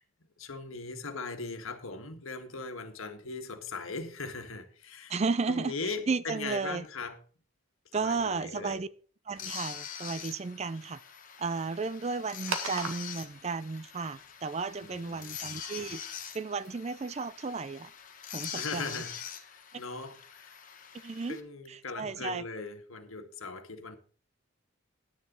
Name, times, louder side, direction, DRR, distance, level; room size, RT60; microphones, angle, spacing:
voice 1, 0.4-5.2 5.5-7.2 7.9-8.8 14.8-15.3 18.5-20.6 21.0-24.0, left 4 dB, 75° left, 1.6 m, -40 dB
voice 2, 5.1-5.7 6.1-6.8 7.9-8.9 9.3-11.0 11.4-16.0 16.3-17.9 18.3-19.0 20.9-21.4 21.7-22.4, right 4 dB, 30° right, 0.4 m, -33 dB
sound 1, 9.4-21.4, left 8 dB, 40° left, 1.3 m, -44 dB
sound 2, 12.4-18.4, right 4 dB, 80° right, 1.8 m, -43 dB
10.5 x 10.0 x 3.9 m
head